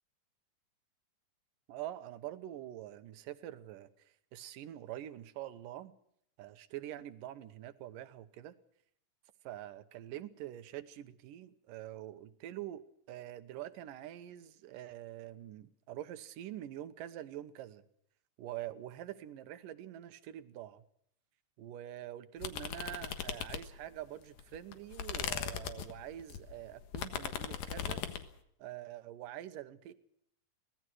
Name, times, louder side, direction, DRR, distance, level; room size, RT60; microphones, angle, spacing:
voice 1, 1.7-5.9 6.4-8.5 9.4-17.8 18.4-20.8 21.6-28.0 28.6-29.9, right 13 dB, 80° right, 12 dB, 2.7 m, -45 dB
sound 1, 22.4-24.0 24.4-28.3, left 9 dB, 85° left, 3.1 m, -39 dB
24.0 x 18.0 x 6.2 m, 0.71 s
omnidirectional pair, 3.8 m